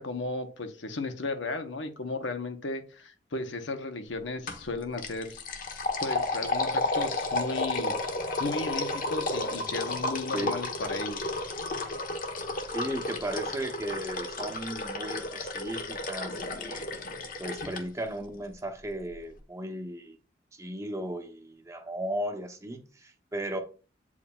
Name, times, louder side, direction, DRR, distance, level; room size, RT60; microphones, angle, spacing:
voice 1, 0.0-5.4 6.0-7.9 8.4-11.4, left 3 dB, 85° left, 1.0 m, -35 dB
sound 1, 4.5-4.7 5.0-17.8, left 2 dB, 50° left, 1.0 m, -32 dB
voice 2, 12.7-16.9 17.4-20.2 20.5-23.6, right 1 dB, 15° right, 0.8 m, -36 dB
8.4 x 4.9 x 2.3 m
head